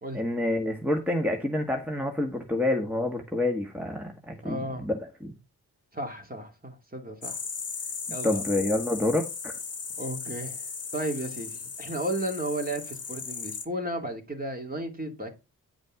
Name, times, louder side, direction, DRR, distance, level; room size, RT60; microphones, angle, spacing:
voice 1, 0.1-4.9 5.2-5.3 8.2-9.5, left 1 dB, 5° right, 1.6 m, -28 dB
voice 2, 4.4-4.9 5.9-7.4 8.1-8.5 10.0-10.6 10.9-15.4, right 1 dB, 20° right, 2.6 m, -34 dB
sound 1, 7.2-13.7, left 5 dB, 35° left, 1.4 m, -37 dB
9.2 x 5.1 x 3.7 m
supercardioid pair, 40°, 40 cm